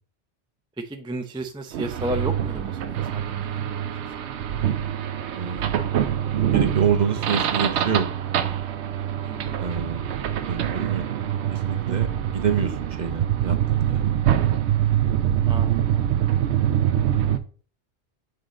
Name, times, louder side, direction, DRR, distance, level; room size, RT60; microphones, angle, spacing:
voice 1, 0.8-3.9 4.2-4.3 9.2-9.6 15.5-16.3, right 1 dB, 5° right, 6 dB, 0.4 m, -34 dB
sound 1, 1.7-17.4, right 10 dB, 85° right, 0.9 m, -24 dB
voice 2, 5.3-5.6 6.5-8.0 9.6-10.2 10.4-11.0 11.5-14.0, right 7 dB, 50° right, 6 dB, 0.7 m, -27 dB
6.8 x 3.8 x 3.9 m, 0.40 s
omnidirectional pair, 1.1 m